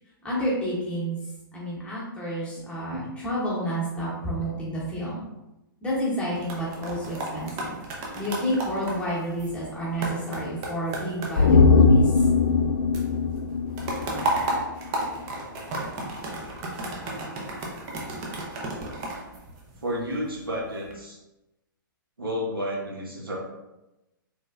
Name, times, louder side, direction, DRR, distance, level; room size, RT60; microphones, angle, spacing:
voice 1, 0.2-1.2 1.5-5.2 5.8-7.8 8.1-12.2, equal, 10° left, -7 dB, 1.1 m, -30 dB
sound 1, 6.2-12.7 12.9-20.1 20.6-20.9, right 2 dB, 30° right, 0.7 m, -33 dB
sound 2, 11.4-14.8 15.1-15.2, left 4 dB, 70° left, 0.4 m, -20 dB
voice 2, 19.8-21.2 22.2-23.3, equal, 80° right, -3 dB, 1.0 m, -31 dB
3.4 x 3.0 x 2.4 m, 0.96 s
figure-of-eight pair, 115°, 12 cm